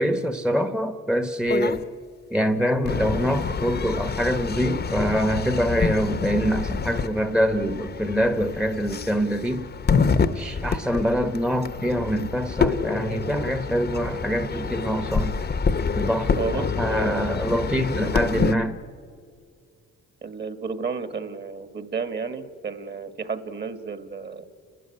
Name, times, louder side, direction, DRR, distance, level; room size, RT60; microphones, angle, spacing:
voice 1, 0.0-1.9 2.3-9.7 10.3-15.4 16.0-18.8, equal, 5° right, 9 dB, 1.0 m, -25 dB
sound 1, 1.5-1.8 2.8-18.5, left 5 dB, 35° left, 0.9 m, -27 dB
voice 2, 16.4-17.3 20.2-24.4, right 5 dB, 35° right, 10 dB, 1.7 m, -31 dB
30.0 x 12.5 x 9.9 m, 2.2 s
cardioid pair, 90°, 30 cm